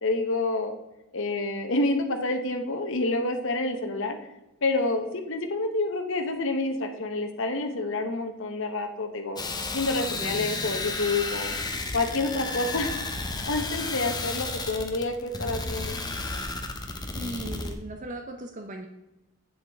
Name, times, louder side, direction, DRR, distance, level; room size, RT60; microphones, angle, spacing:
voice 1, 0.0-0.7 1.1-4.2 4.6-9.4 9.7-11.6 11.9-13.0 13.4-16.0, left 2 dB, 60° left, 5 dB, 0.9 m, -28 dB
sound 1, 9.4-17.7, left 3 dB, 20° left, 0.8 m, -32 dB
voice 2, 10.1-10.5 17.1-18.9, right 1 dB, 35° right, 5 dB, 0.6 m, -37 dB
7.9 x 7.4 x 3.5 m, 0.98 s
head